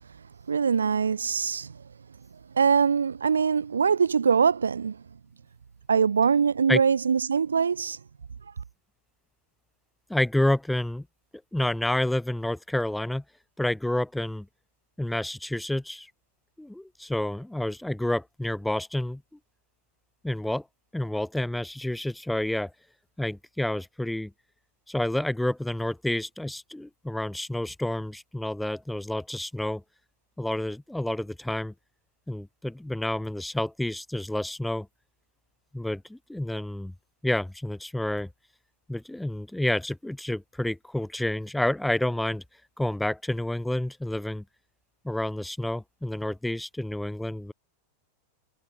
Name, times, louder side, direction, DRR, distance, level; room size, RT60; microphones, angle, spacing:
voice 1, 0.5-1.8 2.5-5.0 5.9-8.0, right 6 dB, 70° right, 0.3 m, -23 dB
voice 2, 10.1-11.1 11.5-13.2 13.6-14.5 15.0-16.1 16.6-19.2 20.2-20.7 20.9-22.7 23.2-24.3 24.9-29.8 30.4-31.7 32.3-34.9 35.7-36.9 37.2-38.3 38.9-42.4 42.8-44.4 45.0-47.5, left 1 dB, 5° left, 0.4 m, -29 dB
figure-of-eight pair, 90°, 0 cm